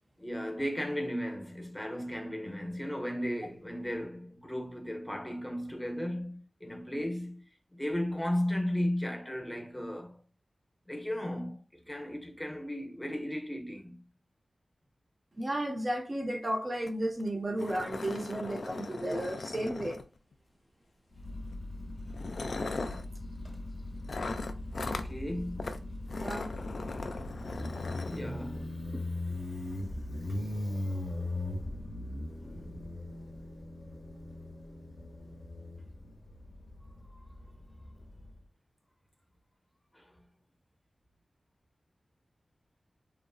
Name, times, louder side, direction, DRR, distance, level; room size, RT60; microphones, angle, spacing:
voice 1, 0.2-7.4 7.7-10.2 10.9-14.0 24.7-25.7 28.1-28.7 32.4-32.7 37.1-37.2 39.9-40.1, equal, 15° left, 0.7 m, -35 dB
voice 2, 15.4-20.0 26.2-26.5, right 1 dB, 35° right, 0.6 m, -33 dB
sound 1, 16.9-17.0 17.2-17.3 17.6-20.3 21.3-21.5 22.1-23.1 24.1-25.1 25.6-25.8 26.1-28.2, left 3 dB, 65° left, 0.3 m, -38 dB
Motorcycle, 21.2-38.4, left 1 dB, 50° left, 0.7 m, -39 dB
2.8 x 2.5 x 2.3 m
cardioid pair, 55°, 0 cm